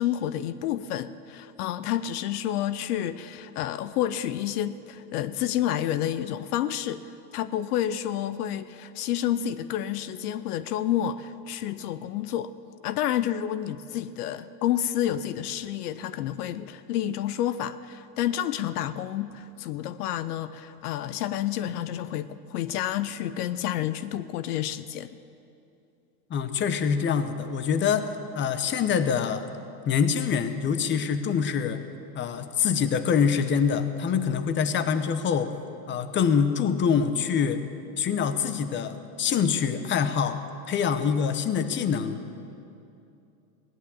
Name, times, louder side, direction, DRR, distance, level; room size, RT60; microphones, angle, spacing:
voice 1, 0.0-12.5 12.8-25.2, left 11 dB, 75° left, 14 dB, 0.8 m, -29 dB
voice 2, 26.3-29.4 29.9-31.8 32.1-35.5 35.9-37.6 38.0-40.4 40.7-42.2, left 7 dB, 25° left, 10 dB, 0.9 m, -25 dB
17.5 x 11.0 x 7.2 m, 2.6 s
hypercardioid pair, 115°, 47 cm